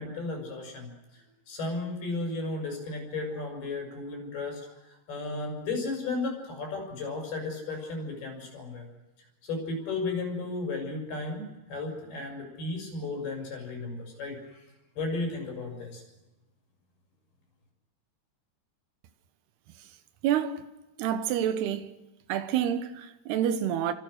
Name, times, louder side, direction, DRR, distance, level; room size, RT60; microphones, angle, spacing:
voice 1, 0.0-8.9 9.4-14.7 15.0-16.0, left 3 dB, 70° left, 7.6 m, -34 dB
voice 2, 20.2-20.7 21.0-21.9 22.3-23.9, right 10 dB, 80° right, 3.1 m, -28 dB
29.5 x 25.5 x 6.5 m
omnidirectional pair, 4.7 m